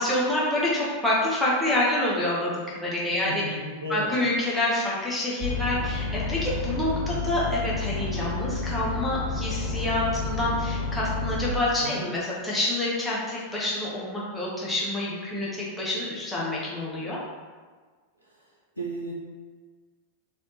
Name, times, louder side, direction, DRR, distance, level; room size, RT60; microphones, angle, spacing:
voice 1, 0.0-3.4 3.9-17.2, left 1 dB, 5° left, -7 dB, 0.9 m, -27 dB
voice 2, 3.2-4.1 11.8-12.1 18.8-19.1, right 1 dB, 90° left, -4 dB, 0.4 m, -33 dB
sound 1, 5.4-11.5, left 3 dB, 55° right, 0.7 m, -30 dB
3.3 x 2.1 x 2.8 m, 1.5 s
figure-of-eight pair, 90°, 0 cm